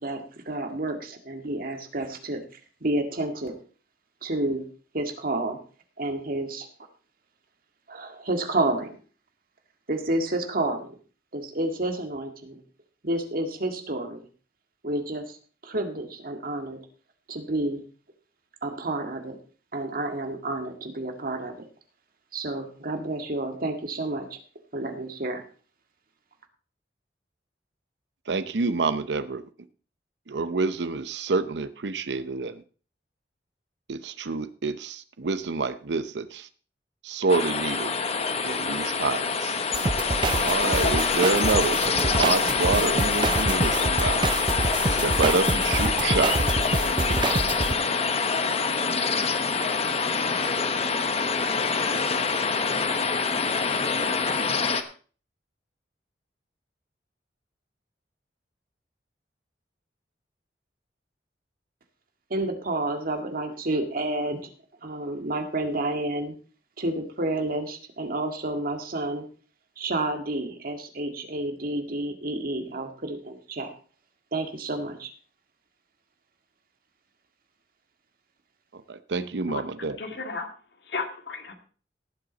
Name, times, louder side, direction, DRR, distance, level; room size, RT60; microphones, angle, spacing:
voice 1, 0.0-2.4 2.8-3.5 4.2-4.6 4.9-5.6 6.0-6.7 7.9-9.0 9.9-11.0 11.3-12.6 13.0-14.3 14.8-15.4 15.6-16.8 17.3-17.8 18.6-19.4 19.7-21.7 22.3-24.4 24.7-25.4 62.3-64.4 64.8-66.3 66.8-69.3 69.8-73.7 74.3-75.1, right 2 dB, 55° right, 5 dB, 1.9 m, -30 dB
voice 2, 28.3-29.4 30.3-32.6 33.9-36.5 37.0-37.9 38.4-39.6 40.4-44.5 44.9-46.4 78.7-80.0, right 4 dB, 75° right, 12 dB, 0.7 m, -27 dB
sound 1, 37.3-54.8, left 5 dB, 35° left, 1.0 m, -25 dB
sound 2, 39.7-47.7, right 3 dB, 25° right, 0.5 m, -27 dB
voice 3, 80.0-80.5 80.9-81.5, left 4 dB, 70° left, 4 dB, 2.2 m, -33 dB
17.5 x 7.7 x 4.0 m, 0.39 s
head